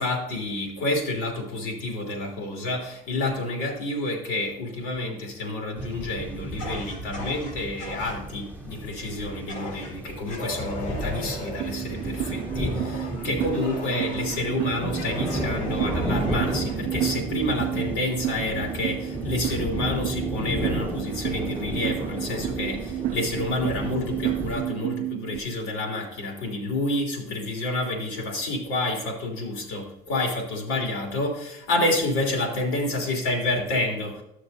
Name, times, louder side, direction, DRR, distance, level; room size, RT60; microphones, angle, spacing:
voice 1, 0.0-34.2, left 2 dB, 70° left, 3.0 m, -29 dB
sound 1, 5.8-24.6, equal, 10° left, 1.9 m, -33 dB
Fire, 6.6-8.2 9.5-9.9 10.3-14.4 14.9-16.8, left 1 dB, 85° left, 3.5 m, -38 dB
sound 2, 11.6-25.4, right 15 dB, 45° right, 0.4 m, -31 dB
12.5 x 6.7 x 2.7 m
cardioid pair, 145°, 17 cm